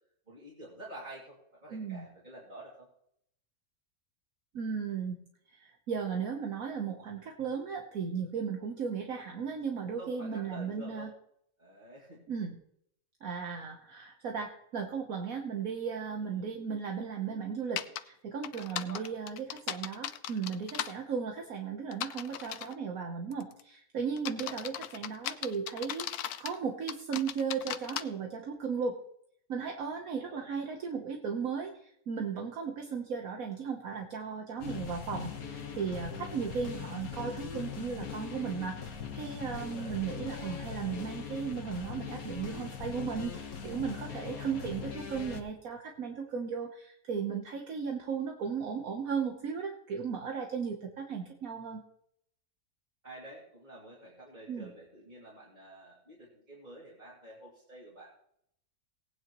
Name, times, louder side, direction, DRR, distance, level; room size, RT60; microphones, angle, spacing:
voice 1, 0.3-2.9 10.0-11.1 11.6-12.3 16.2-16.6 18.5-19.1 24.3-24.6 30.1-30.5 39.6-40.0 43.9-44.7 53.0-58.1, right 1 dB, 30° right, -6 dB, 2.7 m, -49 dB
voice 2, 1.7-2.1 4.5-5.2 5.5-11.1 12.3-12.6 13.2-26.1 26.4-29.0 29.5-51.8 54.5-54.7, right 6 dB, 70° right, 2 dB, 1.5 m, -36 dB
sound 1, 17.8-18.0 18.4-20.9 21.9-22.7 23.3-23.6 24.2-26.6 26.9-28.0, left 11 dB, 90° left, 1.1 m, -37 dB
sound 2, 34.6-45.4, left 6 dB, 75° left, 1.6 m, -41 dB
18.5 x 9.5 x 3.0 m, 0.72 s
omnidirectional pair, 1.6 m